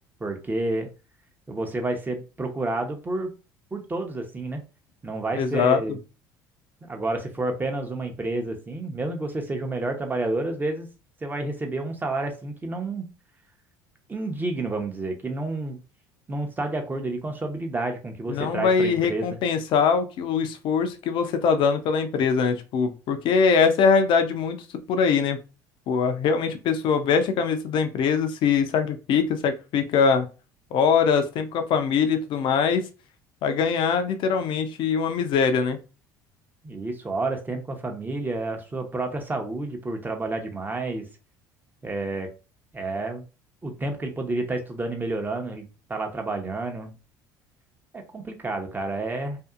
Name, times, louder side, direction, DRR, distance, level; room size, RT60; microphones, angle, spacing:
voice 1, 0.2-0.9 1.5-3.3 3.7-4.6 5.0-6.0 6.9-10.9 11.2-13.1 14.1-15.8 16.3-19.4 36.6-41.1 41.8-42.3 42.7-43.2 43.6-47.0 47.9-49.4, right 2 dB, 20° right, 4 dB, 0.8 m, -30 dB
voice 2, 5.3-5.8 18.3-24.6 24.9-25.4 25.9-30.3 30.7-32.9 33.4-35.8, left 6 dB, 55° left, 8 dB, 0.5 m, -22 dB
2.6 x 2.4 x 2.4 m, 0.31 s
hypercardioid pair, 70°, 10 cm